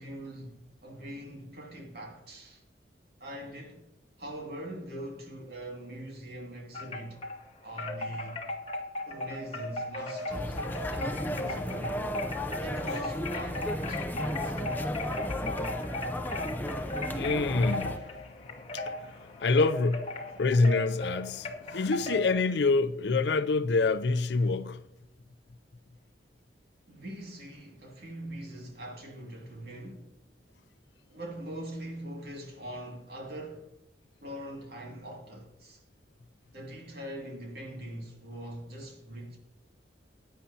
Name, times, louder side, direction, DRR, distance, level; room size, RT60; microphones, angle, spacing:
voice 1, 0.0-2.6 3.2-3.8 4.2-7.2 7.6-8.5 9.1-12.0 12.6-14.6 26.9-30.2 31.1-33.7 34.2-35.8 36.5-39.4, right 1 dB, 60° right, 2.4 m, -42 dB
Wind chime, 6.7-7.4 7.8-22.3, left 2 dB, 35° left, 1.2 m, -37 dB
sound 1, 10.3-18.0, left 1 dB, 10° left, 0.6 m, -34 dB
voice 2, 17.2-18.2 18.5-24.8, left 3 dB, 70° left, 0.5 m, -27 dB
15.5 x 9.3 x 2.8 m
head